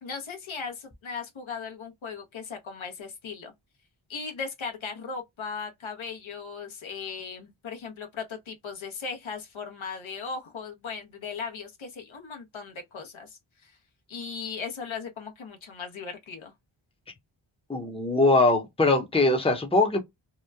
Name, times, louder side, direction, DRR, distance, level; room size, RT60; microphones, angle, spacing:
voice 1, 0.0-3.5 4.1-13.7 14.1-16.5, left 5 dB, 70° left, 1.0 m, -37 dB
voice 2, 17.7-20.0, left 2 dB, 10° left, 0.8 m, -22 dB
3.0 x 2.1 x 2.2 m
cardioid pair, 45°, 50 cm